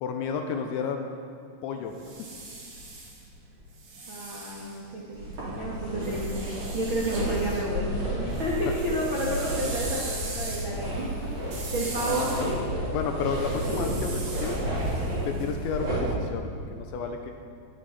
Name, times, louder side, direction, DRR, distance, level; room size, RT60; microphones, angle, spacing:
voice 1, 0.0-1.1 1.6-1.9 12.1-12.5 12.9-14.6 15.3-17.3, left 6 dB, 80° left, 5 dB, 2.9 m, -31 dB
sound 1, 1.8-5.3 6.0-7.7 8.0-15.9, right 3 dB, 45° right, 3.1 m, -41 dB
voice 2, 4.1-6.5 6.7-12.3 12.7-12.8, right 1 dB, 85° right, -5 dB, 1.1 m, -31 dB
sound 2, 5.1-16.0, right 1 dB, 25° right, 4.6 m, -31 dB
18.5 x 12.5 x 4.2 m, 2.3 s
omnidirectional pair, 5.6 m